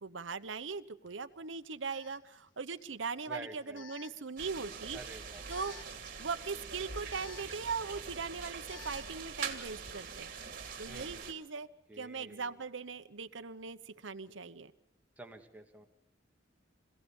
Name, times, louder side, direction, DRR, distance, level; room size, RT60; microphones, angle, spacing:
voice 1, 0.0-5.0 5.5-5.7 6.2-10.3 10.8-11.7 12.0-14.7, right 5 dB, 75° right, 10 dB, 0.9 m, -40 dB
Alarm, 1.1-1.2 1.9-9.2, left 7 dB, 85° left, 1.3 m, -56 dB
voice 2, 3.3-4.1 4.9-5.4 10.9-11.2 11.9-12.6 15.2-15.9, right 2 dB, 10° right, 3 dB, 1.9 m, -49 dB
sound 1, 4.4-11.3, right 5 dB, 50° right, 2.6 m, -43 dB
27.0 x 16.5 x 7.2 m, 0.75 s
head